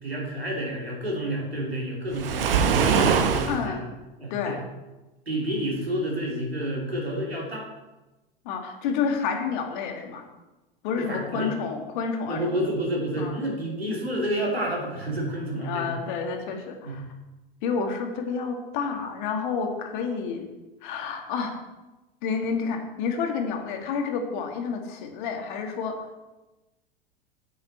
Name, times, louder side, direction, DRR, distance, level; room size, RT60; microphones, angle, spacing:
voice 1, 0.0-3.8 4.2-4.6 5.3-7.7 11.0-11.6 12.3-15.9 16.8-17.0, right 1 dB, 90° right, -3 dB, 3.1 m, -29 dB
Waves surf, 2.1-3.6, right 6 dB, 65° right, 1.1 m, -22 dB
voice 2, 3.5-3.8 4.3-4.6 8.5-10.2 10.8-12.5 13.2-13.4 15.6-17.0 17.6-20.5 20.8-21.6 22.2-26.2, left 5 dB, 55° left, 3 dB, 1.9 m, -29 dB
8.9 x 8.6 x 4.3 m, 1.1 s
figure-of-eight pair, 90°, 30 cm